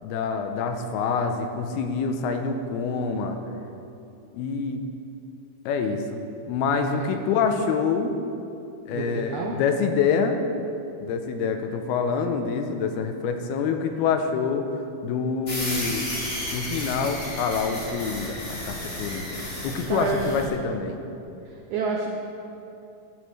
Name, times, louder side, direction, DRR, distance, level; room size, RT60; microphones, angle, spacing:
voice 1, 0.0-3.4 4.3-4.8 5.7-6.2 6.5-8.1 8.9-10.4 11.0-14.7 15.0-16.1 16.5-19.4 19.6-21.0, left 5 dB, 85° left, 6 dB, 2.7 m, -26 dB
voice 2, 6.7-7.1 8.9-9.5 19.9-20.3 21.4-22.1, right 5 dB, 90° right, 0 dB, 1.6 m, -29 dB
sound 1, 15.5-20.5, left 1 dB, 25° left, 2.4 m, -33 dB
14.5 x 12.0 x 3.2 m, 2.7 s
omnidirectional pair, 4.5 m